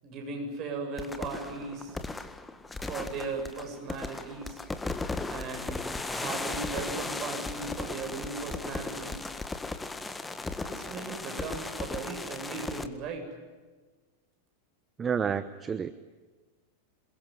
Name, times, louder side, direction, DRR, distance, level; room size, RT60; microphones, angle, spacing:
voice 1, 0.0-2.0 2.9-4.6 5.3-5.8 6.1-9.3 10.7-13.2, right 4 dB, 35° right, 3 dB, 8.0 m, -37 dB
sound 1, 1.0-12.9, left 3 dB, 10° left, 1.7 m, -36 dB
voice 2, 15.0-15.9, right 7 dB, 20° right, 14 dB, 1.0 m, -29 dB
28.0 x 22.0 x 9.4 m, 1.3 s
figure-of-eight pair, 90°, 0 cm